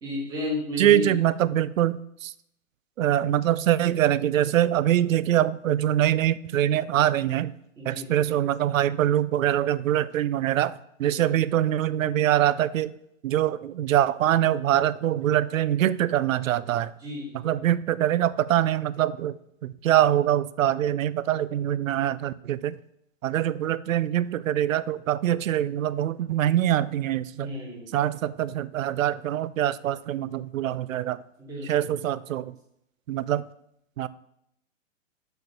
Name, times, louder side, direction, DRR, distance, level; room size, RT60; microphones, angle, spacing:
voice 1, 0.0-1.1 7.7-8.3 11.0-11.3 17.0-17.5 27.3-28.0 31.4-31.9, left 2 dB, 10° right, -5 dB, 1.6 m, -34 dB
voice 2, 0.8-2.3 3.0-7.5 7.9-10.7 11.0-12.9 13.2-16.9 17.4-19.4 19.6-22.8 23.2-27.5 27.9-31.2 31.7-32.5 33.1-33.4 34.0-34.1, right 12 dB, 80° right, 17 dB, 0.5 m, -24 dB
6.4 x 4.4 x 6.6 m, 0.77 s
hypercardioid pair, 175°, 39 cm